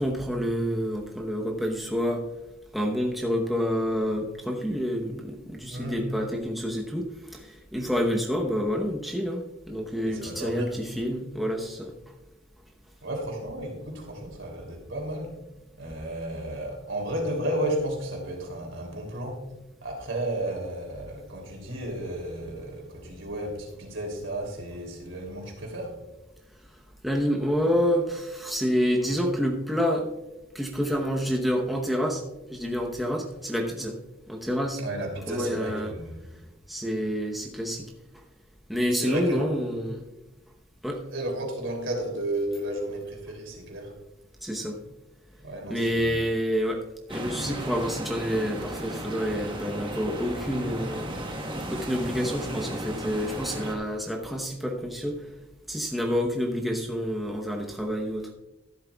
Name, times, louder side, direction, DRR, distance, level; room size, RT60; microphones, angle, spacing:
voice 1, 0.0-2.2 2.7-11.9 27.0-30.1 30.5-32.2 32.5-34.0 34.3-34.8 35.3-35.9 36.7-37.9 38.7-40.1 40.8-41.0 44.4-44.8 45.7-46.8 47.1-51.2 51.7-55.3 55.7-58.3, equal, ahead, -1 dB, 0.9 m, -28 dB
voice 2, 5.7-6.1 10.0-10.7 13.0-15.3 15.8-19.4 19.8-26.0 34.8-36.3 38.9-39.5 41.1-43.9 45.4-46.2, right 1 dB, 75° right, 1 dB, 3.1 m, -33 dB
sound 1, 47.1-53.7, right 1 dB, 25° right, 1.4 m, -35 dB
13.5 x 12.0 x 2.3 m, 1.0 s
head